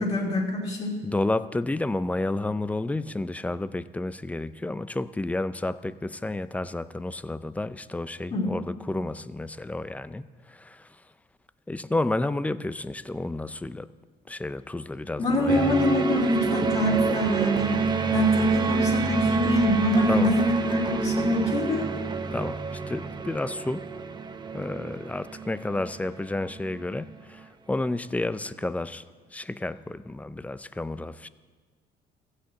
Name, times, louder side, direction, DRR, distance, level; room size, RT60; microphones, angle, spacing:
voice 1, 0.0-0.9 8.3-8.5 15.2-17.8 18.1-21.8, left 1 dB, 40° left, -4 dB, 2.6 m, -25 dB
voice 2, 1.0-10.9 11.7-13.9 14.3-15.7 20.1-20.3 22.3-23.9 24.5-29.0 29.3-31.3, left 2 dB, 10° left, 14 dB, 0.4 m, -31 dB
sound 1, 15.5-26.8, right 4 dB, 25° right, 0.8 m, -28 dB
15.0 x 6.5 x 8.1 m, 1.4 s
cardioid pair, 110°, 17 cm